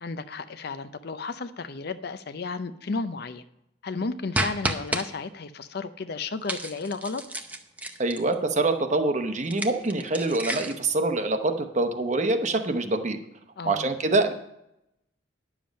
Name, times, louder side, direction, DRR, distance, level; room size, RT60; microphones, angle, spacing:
voice 1, 0.0-3.4 3.8-7.2 13.6-13.9, left 4 dB, 50° left, 12 dB, 0.5 m, -33 dB
sound 1, 4.3-5.0 6.5-8.3 9.4-10.9, right 1 dB, 10° right, 0.6 m, -31 dB
voice 2, 8.0-13.2 13.6-14.3, right 2 dB, 35° right, 7 dB, 0.9 m, -25 dB
10.5 x 7.3 x 5.2 m, 0.82 s
head